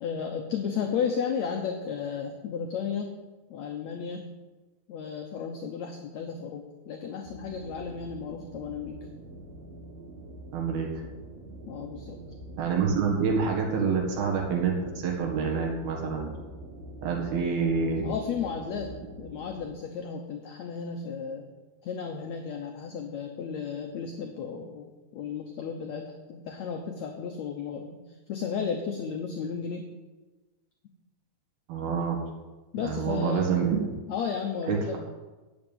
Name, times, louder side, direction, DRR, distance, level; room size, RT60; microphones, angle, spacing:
voice 1, 0.0-3.2 3.5-4.3 4.9-9.1 11.7-12.2 18.0-21.5 21.8-29.9 32.7-33.5 34.1-35.0, left 6 dB, 70° left, 3 dB, 1.7 m, -34 dB
sound 1, 7.2-19.7, right 2 dB, 55° right, 2.3 m, -44 dB
voice 2, 10.5-10.9 12.6-16.4 17.0-18.1 31.7-32.2 32.8-34.0 34.7-35.0, right 5 dB, 80° right, 0 dB, 3.6 m, -27 dB
8.9 x 7.5 x 9.1 m, 1.2 s
omnidirectional pair, 4.3 m